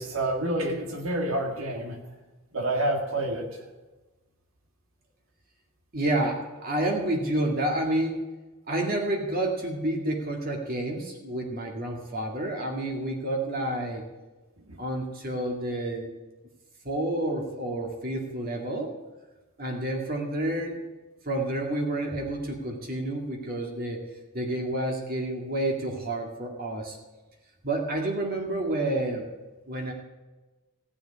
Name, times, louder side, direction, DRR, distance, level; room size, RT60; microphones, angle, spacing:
voice 1, 0.0-2.0 2.5-3.7 14.7-14.8, right 1 dB, 65° right, 3 dB, 1.8 m, -28 dB
voice 2, 5.9-8.2 8.7-14.1 14.8-16.1 16.8-18.9 19.6-20.8 21.3-24.0 24.3-27.0 27.6-29.3 29.7-29.9, right 1 dB, 45° right, 1 dB, 2.1 m, -29 dB
15.0 x 6.9 x 9.6 m, 1.2 s
head